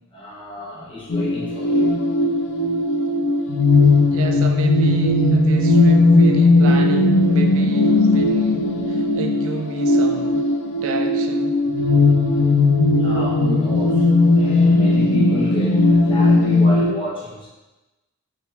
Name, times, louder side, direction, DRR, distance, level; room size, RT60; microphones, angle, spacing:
voice 1, 0.1-2.0 13.0-17.5, left 1 dB, 25° left, -8 dB, 1.2 m, -31 dB
sound 1, 1.1-16.9, left 2 dB, 60° left, 0.4 m, -17 dB
voice 2, 4.1-10.4 10.8-11.6, right 4 dB, 65° right, 5 dB, 0.4 m, -31 dB
4.0 x 3.8 x 2.7 m, 1.1 s
head